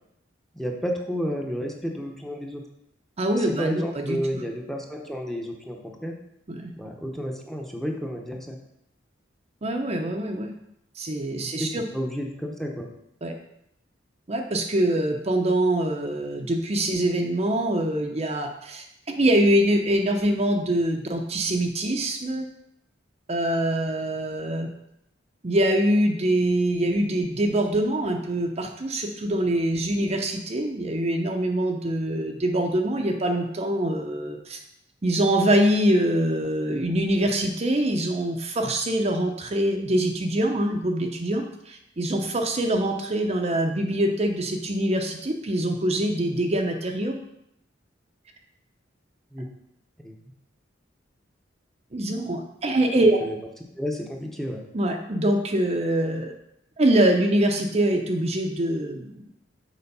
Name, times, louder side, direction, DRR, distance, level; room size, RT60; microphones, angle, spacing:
voice 1, 0.5-2.6 3.4-6.1 6.8-8.6 11.4-12.9 49.3-49.5 50.0-50.1 53.0-53.4 53.8-54.6, equal, ahead, 1 dB, 0.8 m, -31 dB
voice 2, 3.2-4.4 6.5-6.7 9.6-10.5 11.0-11.8 13.2-13.3 14.3-22.5 23.3-24.7 25.4-34.6 35.0-47.2 51.9-53.2 54.7-56.3 56.8-59.3, right 1 dB, 35° right, 3 dB, 0.6 m, -24 dB
6.9 x 4.5 x 5.4 m, 0.80 s
head